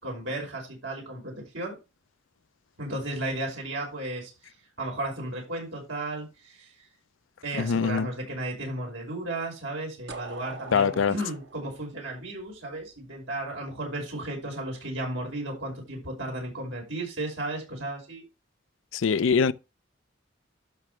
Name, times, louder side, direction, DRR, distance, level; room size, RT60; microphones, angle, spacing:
voice 1, 0.0-1.8 2.8-4.3 4.8-6.7 7.4-18.2, right 1 dB, 85° right, 5.4 m, -34 dB
voice 2, 7.6-8.1 10.7-11.2 18.9-19.5, left 6 dB, 85° left, 0.5 m, -23 dB
sound 1, 10.1-12.9, right 3 dB, 60° right, 1.3 m, -43 dB
12.5 x 6.1 x 3.3 m
head